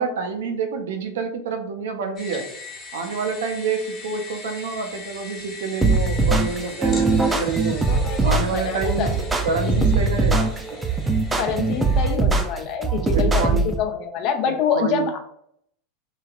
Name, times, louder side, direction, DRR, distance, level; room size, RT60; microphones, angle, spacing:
voice 1, 0.0-2.5 2.9-7.8 8.2-9.1 9.4-10.5 12.1-12.2 13.0-13.7 14.5-15.1, right 5 dB, 70° right, 5 dB, 0.5 m, -28 dB
sound 1, 2.2-12.2, left 3 dB, 30° left, 0.9 m, -39 dB
sound 2, 5.8-13.8, right 3 dB, 15° right, 0.4 m, -21 dB
Guitar, 6.3-11.7, right 2 dB, 35° right, 0.7 m, -41 dB
voice 2, 7.9-9.3 9.6-9.8 11.4-15.2, left 7 dB, 50° left, 5 dB, 0.5 m, -26 dB
3.1 x 2.4 x 2.3 m, 0.70 s
hypercardioid pair, 90°, 0 cm